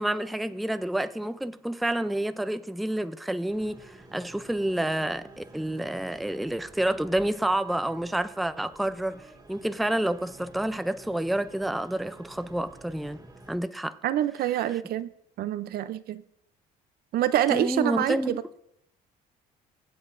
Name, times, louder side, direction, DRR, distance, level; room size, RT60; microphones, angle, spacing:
voice 1, 0.0-13.2 13.5-13.9 14.7-14.8 17.5-18.4, right 1 dB, ahead, 0.4 m, -29 dB
sound 1, 3.5-13.6, right 2 dB, 25° right, 1.8 m, -51 dB
voice 2, 14.0-15.1 15.4-16.2 17.1-18.4, right 12 dB, 65° right, 0.6 m, -26 dB
23.0 x 8.0 x 2.6 m
cardioid pair, 110°, 17 cm